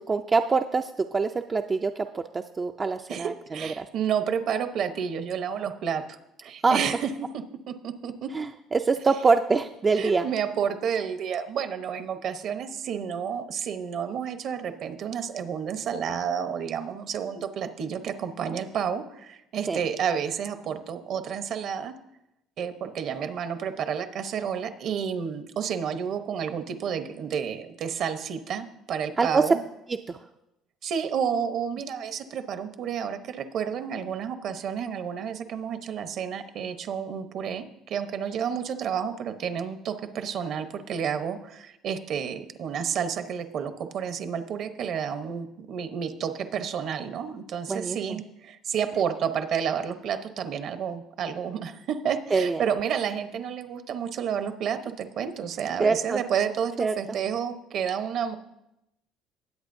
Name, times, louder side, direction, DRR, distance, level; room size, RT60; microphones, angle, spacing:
voice 1, 0.1-3.9 6.6-6.8 8.3-10.2 19.7-19.8 29.2-29.4 30.1-30.2 47.7-48.2 52.3-52.6 55.8-56.2 56.8-56.9, right 4 dB, 25° right, 6 dB, 0.4 m, -25 dB
voice 2, 3.1-6.0 6.4-8.3 9.9-21.9 22.6-29.6 30.8-58.4, right 7 dB, 55° right, 9 dB, 0.9 m, -30 dB
18.5 x 8.2 x 2.7 m, 0.87 s
cardioid pair, 130°, 0 cm